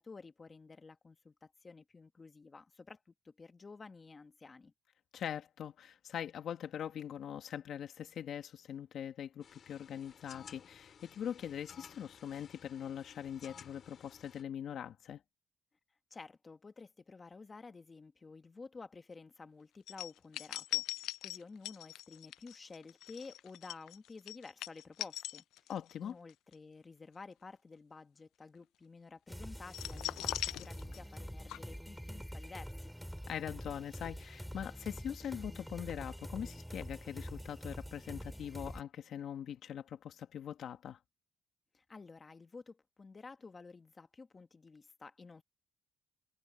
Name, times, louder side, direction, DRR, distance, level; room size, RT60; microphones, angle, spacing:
voice 1, 0.0-4.7 16.1-25.4 26.0-32.9 41.7-45.4, left 4 dB, 30° left, 1.7 m, -52 dB
voice 2, 5.1-15.2 25.7-26.1 33.3-41.0, left 9 dB, 70° left, 2.2 m, -42 dB
sound 1, 9.4-14.4, left 7 dB, 55° left, 6.4 m, -56 dB
sound 2, 19.9-25.9 26.3-26.5 29.7-31.2 31.5-31.6, left 15 dB, 85° left, 0.6 m, -41 dB
sound 3, 29.3-38.8, equal, ahead, 4.4 m, -46 dB
cardioid pair, 90°, 0 cm